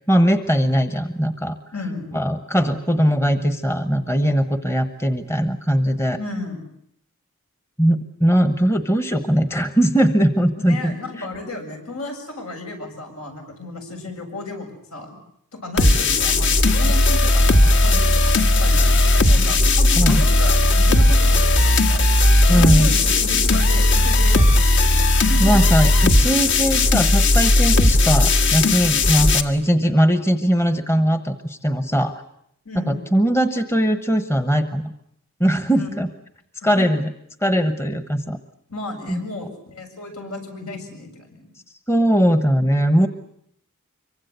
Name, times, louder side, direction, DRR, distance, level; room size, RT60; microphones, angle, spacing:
voice 1, 0.1-1.6 2.1-6.2 7.8-11.3 20.0-20.2 22.5-22.9 25.1-32.2 32.9-34.8 35.4-36.1 36.6-37.1 37.4-38.4 39.1-39.2 41.9-43.1, equal, 10° left, 10 dB, 1.0 m, -20 dB
voice 2, 1.7-2.2 6.2-6.6 10.6-15.2 15.5-24.7 25.1-25.7 32.6-33.0 35.7-35.9 36.6-36.9 38.7-41.5, left 2 dB, 80° left, 4 dB, 7.8 m, -33 dB
sound 1, 15.8-29.4, left 2 dB, 55° left, 1.7 m, -16 dB
25.5 x 24.0 x 8.1 m, 0.72 s
head